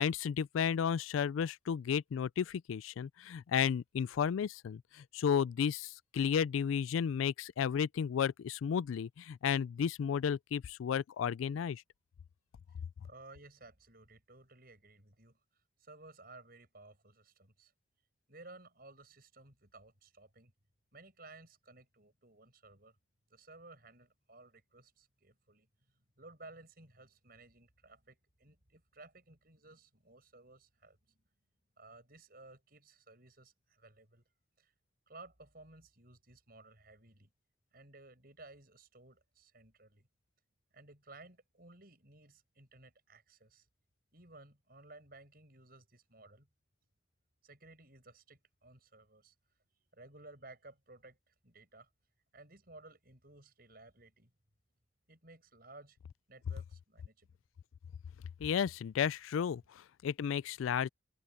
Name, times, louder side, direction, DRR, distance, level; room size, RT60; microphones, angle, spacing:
voice 1, 0.0-11.8 58.4-60.9, left 7 dB, 85° left, 0.3 m, -33 dB
voice 2, 13.0-15.4 15.8-17.7 18.3-20.5 20.9-23.0 23.3-25.7 26.2-31.2 31.8-34.2 34.6-34.7 35.1-37.3 37.7-40.1 40.7-43.7 44.1-46.5 47.4-49.3 49.9-51.9 52.3-54.3 55.1-56.0 56.3-57.4, right 2 dB, 50° right, 6.8 m, -57 dB
head